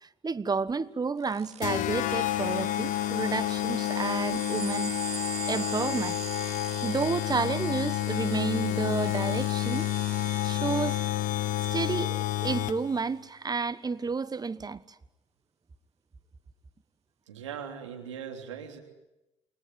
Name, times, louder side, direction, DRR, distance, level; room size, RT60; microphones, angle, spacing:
voice 1, 0.0-4.9 5.5-6.2 6.8-9.9 10.4-11.0 11.7-14.8, right 4 dB, 25° right, 1.3 m, -31 dB
sound 1, 1.2-12.3, right 9 dB, 45° right, 0.9 m, -43 dB
sound 2, 1.6-13.0, left 14 dB, 60° left, 1.0 m, -29 dB
voice 2, 17.3-18.8, right 8 dB, 85° right, 3.2 m, -40 dB
29.0 x 21.0 x 9.5 m
hypercardioid pair, 55°, 15 cm